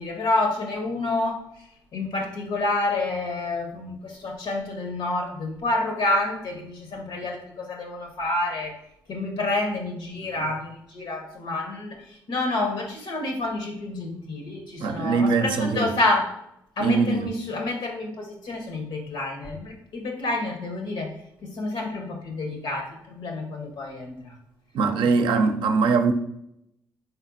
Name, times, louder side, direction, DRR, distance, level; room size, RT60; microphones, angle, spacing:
voice 1, 0.0-1.4 1.9-8.8 9.1-16.4 16.8-24.4 25.4-25.5, left 2 dB, 70° left, 1.1 m, -28 dB
voice 2, 14.8-15.9 16.8-17.3 24.7-26.1, right 4 dB, 75° right, 0.5 m, -22 dB
4.3 x 4.2 x 2.7 m
hypercardioid pair, 50°, 8 cm